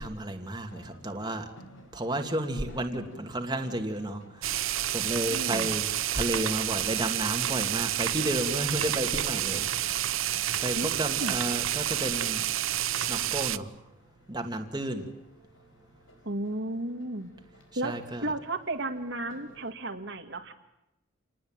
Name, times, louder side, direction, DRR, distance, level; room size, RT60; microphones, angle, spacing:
voice 1, 0.0-1.5 1.9-4.6 4.9-10.1 10.6-12.5 12.9-13.7 14.3-15.1 17.7-18.3, right 1 dB, 20° right, 4 dB, 2.4 m, -32 dB
sound 1, 0.7-19.7, left 1 dB, 75° left, 5.0 m, -58 dB
sound 2, 4.4-13.6, right 12 dB, 85° right, 0.9 m, -29 dB
voice 2, 5.3-5.7 10.7-10.9 11.2-11.4 16.3-17.3 17.8-18.0 18.2-20.5, right 2 dB, 60° right, 4 dB, 2.1 m, -33 dB
28.5 x 20.0 x 9.1 m, 0.89 s
head